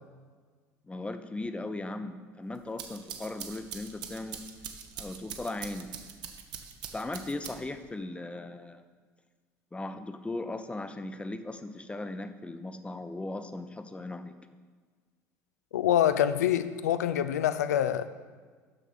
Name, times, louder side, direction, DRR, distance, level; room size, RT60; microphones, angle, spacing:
voice 1, 0.9-4.4 5.0-5.9 6.9-8.8 9.7-14.3, left 2 dB, 15° left, 9 dB, 0.6 m, -38 dB
sound 1, 2.5-7.9, right 7 dB, 55° right, 0.9 m, -43 dB
voice 2, 15.7-18.1, left 10 dB, 80° left, 13 dB, 0.4 m, -25 dB
6.7 x 6.1 x 6.0 m, 1.5 s
hypercardioid pair, 65°, 9 cm